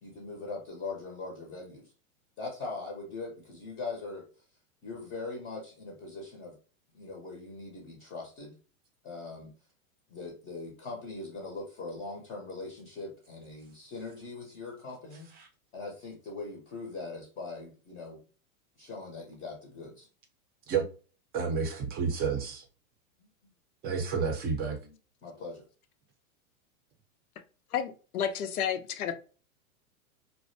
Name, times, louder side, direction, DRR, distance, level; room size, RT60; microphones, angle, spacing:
voice 1, 0.0-1.9 2.4-4.3 4.8-6.5 6.9-8.6 9.0-9.5 10.1-15.4 15.7-18.2 18.8-20.1 23.2-23.3 24.8-25.0 25.2-25.6, left 3 dB, 25° left, 0.7 m, -41 dB
voice 2, 21.3-22.6 23.8-24.8, right 5 dB, 20° right, 0.5 m, -30 dB
voice 3, 27.7-29.1, left 8 dB, 85° left, 0.6 m, -31 dB
2.5 x 2.1 x 2.5 m
hypercardioid pair, 120°, 44 cm